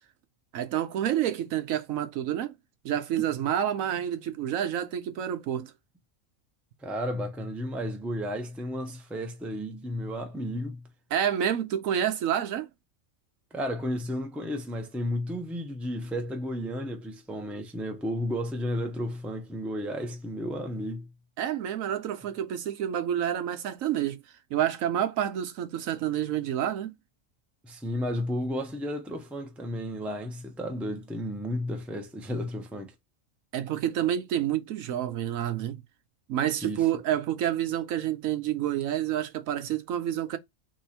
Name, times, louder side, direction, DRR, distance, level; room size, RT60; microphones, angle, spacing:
voice 1, 0.5-2.6 2.8-5.7 11.1-12.7 21.4-24.2 24.5-26.9 33.5-35.8 36.3-40.4, right 10 dB, 85° right, 1.1 m, -28 dB
voice 2, 6.8-10.8 13.5-21.1 27.6-32.9 36.6-36.8, equal, ahead, 0.5 m, -33 dB
3.7 x 2.9 x 4.2 m
omnidirectional pair, 1.4 m